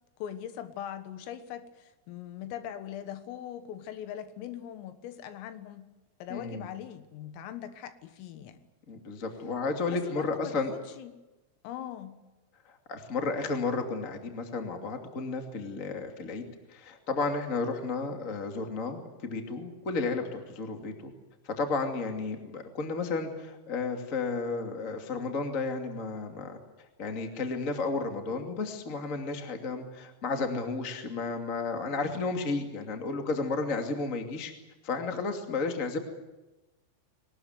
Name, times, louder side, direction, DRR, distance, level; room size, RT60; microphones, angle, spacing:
voice 1, 0.2-5.9 6.2-8.6 9.9-11.2 11.6-12.2, left 10 dB, 80° left, 10 dB, 3.9 m, -41 dB
voice 2, 6.3-6.7 8.9-10.7 12.9-16.4 16.7-21.1 21.4-26.6 27.0-34.5 34.8-36.0, left 4 dB, 35° left, 4 dB, 1.2 m, -32 dB
22.0 x 19.0 x 9.4 m, 1.0 s
omnidirectional pair, 6.0 m